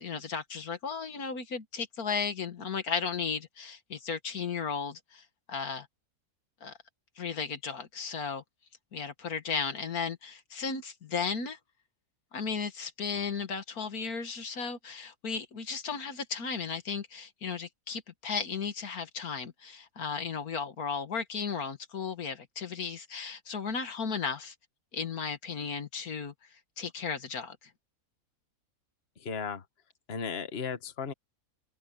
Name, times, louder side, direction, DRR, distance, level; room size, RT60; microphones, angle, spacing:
voice 1, 0.0-5.9 6.6-6.7 7.2-8.4 8.9-11.6 12.3-24.5 24.9-26.3 26.8-27.7, left 6 dB, 70° left, 2.0 m, -35 dB
voice 2, 29.2-29.6 30.1-31.1, left 6 dB, 40° left, 1.6 m, -35 dB
omnidirectional pair, 1.6 m